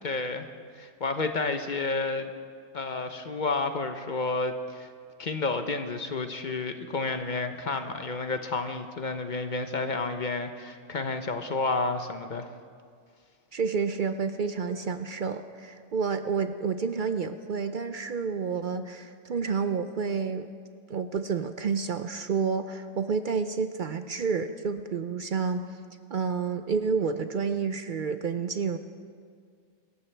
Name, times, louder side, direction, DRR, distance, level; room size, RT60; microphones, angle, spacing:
voice 1, 0.0-0.5 0.8-2.3 2.7-4.9 5.2-12.5, left 3 dB, 45° left, 7 dB, 0.8 m, -30 dB
voice 2, 13.5-20.5 20.9-25.6 26.1-28.8, right 5 dB, 60° right, 9 dB, 0.5 m, -29 dB
24.5 x 14.0 x 3.3 m, 2.1 s
omnidirectional pair, 1.4 m